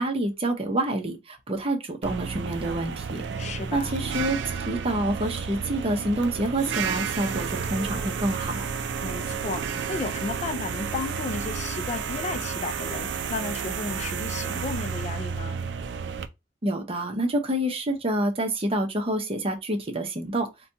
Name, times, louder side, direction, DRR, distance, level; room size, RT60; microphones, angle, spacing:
voice 1, 0.0-3.2 3.7-4.4 4.7-8.7 16.6-20.5, right 1 dB, 35° right, 0.7 m, -27 dB
sound 1, 2.0-16.3, right 6 dB, 75° right, 0.4 m, -31 dB
voice 2, 3.4-4.0 9.0-15.6, left 4 dB, 40° left, 0.3 m, -34 dB
4.1 x 2.2 x 2.6 m
head